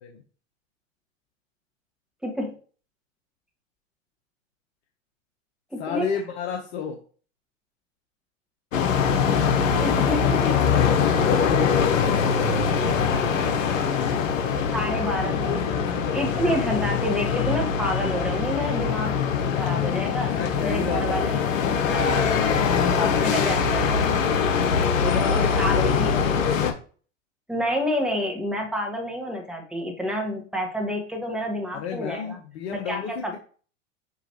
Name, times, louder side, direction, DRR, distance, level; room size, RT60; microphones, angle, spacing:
voice 1, 2.2-2.5 5.7-6.1 9.8-10.6 14.7-15.6 16.1-19.1 19.5-20.3 20.6-22.3 23.0-23.9 25.3-26.1 27.5-32.4 32.7-33.4, left 1 dB, ahead, 0 dB, 1.4 m, -28 dB
voice 2, 5.8-7.0 20.3-22.3 22.6-23.7 25.0-26.4 31.7-33.4, left 7 dB, 55° left, 2 dB, 1.1 m, -32 dB
sound 1, 8.7-26.7, left 6 dB, 75° left, 0.9 m, -23 dB
6.0 x 3.0 x 2.9 m, 0.41 s
hypercardioid pair, 100°, 39 cm